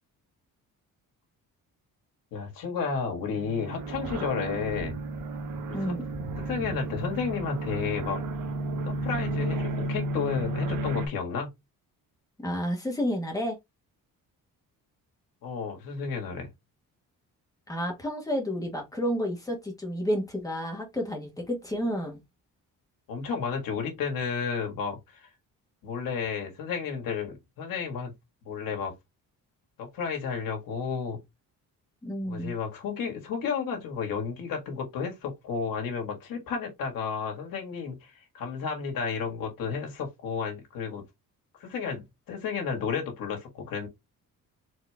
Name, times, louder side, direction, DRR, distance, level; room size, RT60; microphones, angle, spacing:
voice 1, 2.3-5.0 5.7-6.0 6.5-8.2 8.9-11.5 15.4-16.5 23.1-25.3 25.8-28.1 28.4-28.9 29.8-31.2 32.3-41.0 41.6-43.9, left 6 dB, 75° left, 1.7 m, -32 dB
sound 1, 3.3-11.1, right 2 dB, 65° right, 1.1 m, -32 dB
voice 2, 5.7-6.0 12.4-13.6 17.7-22.2 32.0-32.5, equal, 10° left, 1.3 m, -30 dB
4.2 x 3.0 x 3.4 m
cardioid pair, 155°, 34 cm